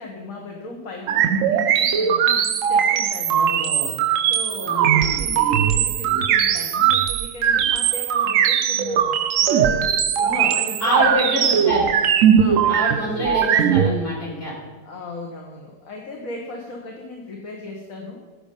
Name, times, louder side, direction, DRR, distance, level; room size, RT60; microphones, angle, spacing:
voice 1, 0.0-2.3 2.7-3.8 4.2-11.6 12.3-13.5 14.8-18.2, left 2 dB, 55° left, 0 dB, 1.8 m, -37 dB
sound 1, 1.1-13.9, right 8 dB, 65° right, 0.9 m, -19 dB
voice 2, 3.3-3.9 4.6-5.3 10.2-10.5 10.8-11.9 12.7-14.5, left 1 dB, 35° left, -4 dB, 4.7 m, -27 dB
15.5 x 7.1 x 5.4 m, 1.3 s
omnidirectional pair, 1.8 m